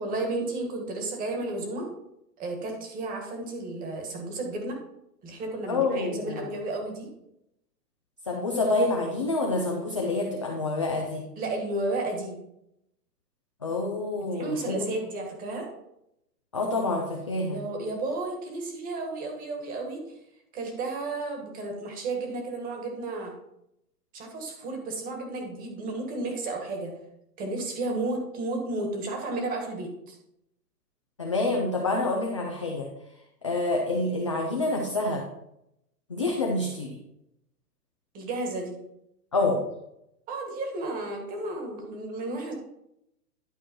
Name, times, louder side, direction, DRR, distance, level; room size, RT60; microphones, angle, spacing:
voice 1, 0.0-1.9 2.4-4.8 5.2-7.1 11.4-12.4 14.3-15.7 17.5-20.0 20.5-23.3 24.1-26.9 27.4-30.2 38.1-38.8 40.3-42.5, right 2 dB, 15° right, 3 dB, 1.6 m, -32 dB
voice 2, 5.7-6.4 8.3-11.2 13.6-14.8 16.5-17.6 31.2-32.9 33.4-35.2 36.1-36.9 39.3-39.6, left 2 dB, 20° left, -1 dB, 0.4 m, -27 dB
11.5 x 4.5 x 4.5 m, 0.80 s
hypercardioid pair, 155°, 50 cm